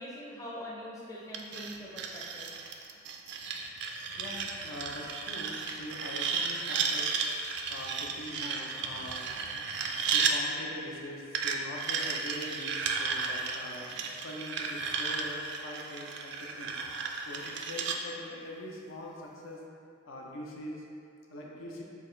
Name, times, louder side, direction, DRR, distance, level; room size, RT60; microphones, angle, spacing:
voice 1, 0.0-2.5, equal, 15° left, -6 dB, 0.5 m, -43 dB
sound 1, 1.3-10.4 11.3-18.0, right 5 dB, 55° right, 0.3 m, -34 dB
voice 2, 4.2-7.1 7.7-9.2 10.1-16.8 17.3-19.6 20.1-20.8 21.3-21.8, left 1 dB, 80° left, -2 dB, 0.6 m, -43 dB
6.4 x 2.4 x 3.2 m, 2.5 s
head